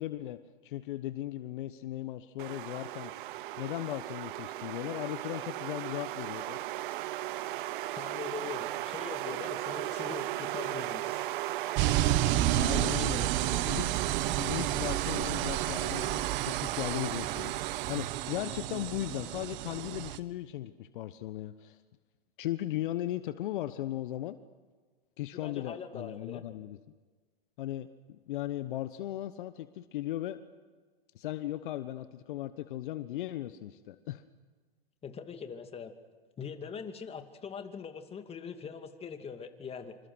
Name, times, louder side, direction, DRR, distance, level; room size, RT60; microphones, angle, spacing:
voice 1, 0.0-3.1 3.6-6.6 12.5-13.2 13.6-13.9 14.4-21.8 22.4-24.4 25.2-26.8 27.6-30.4 31.1-34.2, left 14 dB, 60° left, 12 dB, 1.2 m, -37 dB
sound 1, 2.4-20.2, right 15 dB, 60° right, 0.9 m, -36 dB
voice 2, 7.9-11.2 12.7-13.6 25.4-26.4 35.0-35.9 36.4-40.0, left 6 dB, 20° left, 7 dB, 2.5 m, -42 dB
sound 2, 11.8-20.2, right 14 dB, 40° right, 1.5 m, -31 dB
27.0 x 27.0 x 6.3 m, 1.4 s
hypercardioid pair, 110°, 29 cm